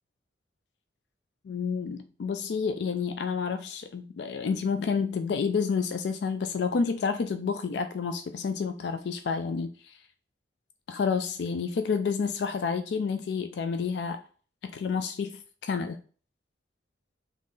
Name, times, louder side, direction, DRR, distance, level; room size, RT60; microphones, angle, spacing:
voice 1, 1.4-10.0 10.9-14.2 14.6-16.0, left 5 dB, 70° left, 0.4 m, -29 dB
3.7 x 3.1 x 3.8 m
head